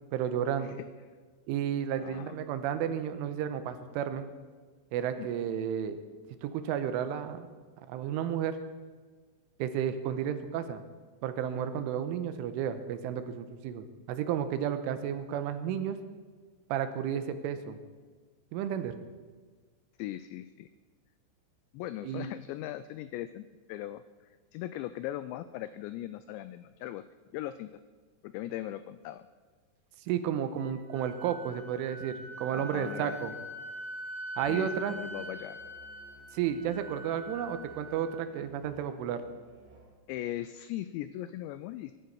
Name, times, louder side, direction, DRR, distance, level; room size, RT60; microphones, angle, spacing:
voice 1, 0.1-0.7 1.5-4.3 4.9-6.0 6.4-7.5 7.9-8.6 9.6-10.8 11.2-16.0 16.7-17.8 18.5-18.9 22.0-22.3 30.1-33.3 34.4-35.0 36.3-39.2, right 9 dB, 90° right, 10 dB, 3.4 m, -32 dB
voice 2, 2.0-2.4 5.2-5.3 20.0-20.7 21.7-24.0 24.5-27.0 27.3-27.7 28.2-29.3 32.5-33.2 34.5-35.6 40.1-41.9, left 13 dB, 90° left, 13 dB, 2.5 m, -39 dB
Wind instrument woodwind instrument, 30.6-38.3, equal, 35° right, 2.1 m, -43 dB
Musical instrument, 34.4-40.0, right 3 dB, 65° right, 4.4 m, -57 dB
21.5 x 11.5 x 4.7 m, 1.5 s
omnidirectional pair, 5.6 m